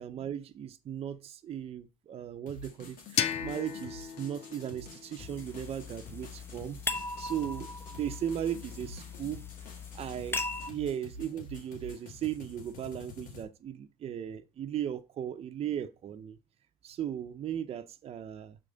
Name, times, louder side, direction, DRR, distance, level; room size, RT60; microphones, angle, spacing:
voice 1, 0.0-6.8 7.2-9.4 9.9-16.4 16.8-18.6, right 10 dB, 40° right, 0.7 m, -37 dB
sound 1, 2.5-13.4, left 2 dB, 65° left, 2.5 m, -49 dB
sound 2, 3.2-6.0, left 9 dB, 45° left, 0.7 m, -36 dB
sound 3, 5.2-10.7, left 3 dB, 15° left, 0.8 m, -39 dB
6.3 x 4.8 x 4.0 m
supercardioid pair, 95°, 15 cm